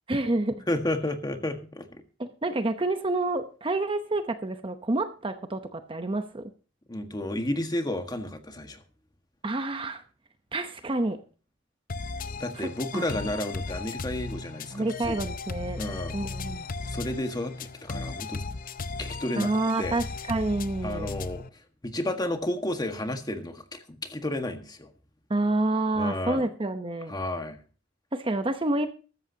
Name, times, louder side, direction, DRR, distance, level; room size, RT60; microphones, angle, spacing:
voice 1, 0.1-0.6 2.2-6.5 9.4-10.0 10.5-11.2 12.6-13.0 14.7-15.8 16.1-16.7 19.4-21.1 25.3-27.1 28.1-28.9, right 2 dB, 30° right, 8 dB, 0.9 m, -28 dB
voice 2, 0.7-2.0 6.9-8.8 12.3-15.1 15.8-16.1 16.8-18.4 19.0-19.5 19.8-20.0 20.8-21.4 21.8-24.9 25.9-26.5 27.1-27.6, left 1 dB, 20° left, 6 dB, 1.6 m, -32 dB
sound 1, 11.9-21.5, left 3 dB, 50° left, 0.6 m, -36 dB
14.5 x 13.5 x 2.8 m, 0.36 s
head